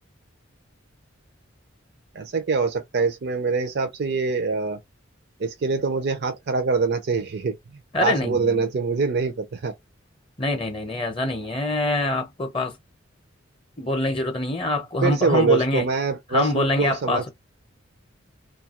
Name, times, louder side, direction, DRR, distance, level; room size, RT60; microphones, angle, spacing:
voice 1, 2.1-4.8 5.4-7.5 8.0-9.7 15.0-17.3, right 4 dB, 55° right, 0.5 m, -24 dB
voice 2, 7.9-8.7 10.4-12.8 13.8-15.9 16.3-17.3, left 2 dB, 25° left, 0.6 m, -25 dB
2.6 x 2.3 x 2.8 m
head